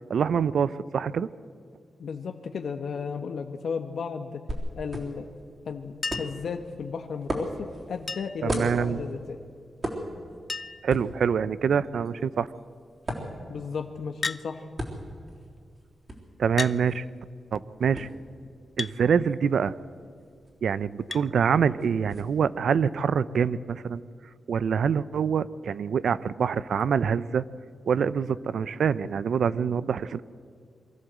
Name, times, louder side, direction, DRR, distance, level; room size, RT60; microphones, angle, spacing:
voice 1, 0.1-1.3 8.4-9.0 10.8-12.5 16.4-17.0 17.5-18.1 18.8-19.8 20.6-24.0 24.5-27.4 27.9-30.2, right 7 dB, 75° right, 17 dB, 0.6 m, -25 dB
voice 2, 2.0-4.4 4.7-5.3 5.6-9.4 13.5-14.7, left 5 dB, 75° left, 6 dB, 1.1 m, -34 dB
sound 1, 4.5-22.2, right 1 dB, 35° right, 3.7 m, -39 dB
Chink clink, 6.0-6.5 8.1-8.5 9.9-10.0 10.2-10.3 10.5-10.9 11.7-12.1 14.2-14.5 15.5-15.6 16.6-16.8 18.8-19.0 21.1-21.3 22.7-22.8, left 4 dB, 40° left, 0.4 m, -33 dB
23.5 x 14.0 x 8.1 m, 2.2 s
wide cardioid pair, 130°, 0 cm